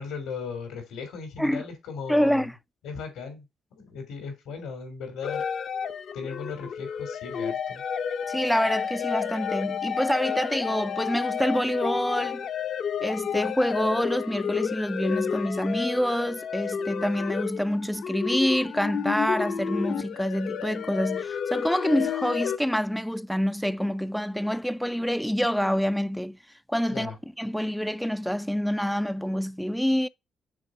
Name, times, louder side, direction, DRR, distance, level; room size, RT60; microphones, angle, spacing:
voice 1, 0.0-2.5 2.8-3.4 3.7-5.4 6.1-7.8 26.9-27.2, left 5 dB, 85° left, 3.1 m, -37 dB
voice 2, 2.1-2.5 8.3-12.5 13.0-26.4 26.7-30.1, equal, ahead, 0.3 m, -27 dB
sound 1, 5.2-22.6, left 7 dB, 60° left, 0.8 m, -31 dB
6.3 x 4.1 x 4.9 m
cardioid pair, 90°, 0 cm